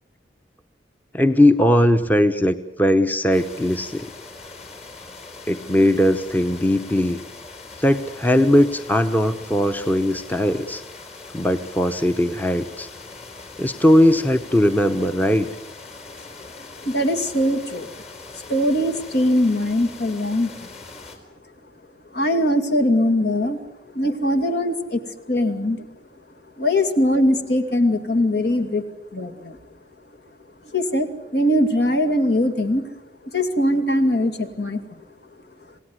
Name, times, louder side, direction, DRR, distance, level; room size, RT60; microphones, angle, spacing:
voice 1, 1.1-4.1 5.5-7.2 7.8-10.8 11.3-12.9 13.6-15.5, left 1 dB, 10° left, 9 dB, 0.9 m, -19 dB
sound 1, 3.3-21.2, left 3 dB, 40° left, 4.5 m, -41 dB
voice 2, 16.8-17.9 18.3-20.7 22.1-23.6 23.9-25.9 26.6-28.8 29.1-29.6 30.7-32.8 33.3-35.0, left 1 dB, 65° left, 6 dB, 2.5 m, -21 dB
27.5 x 18.0 x 9.8 m, 1.0 s
head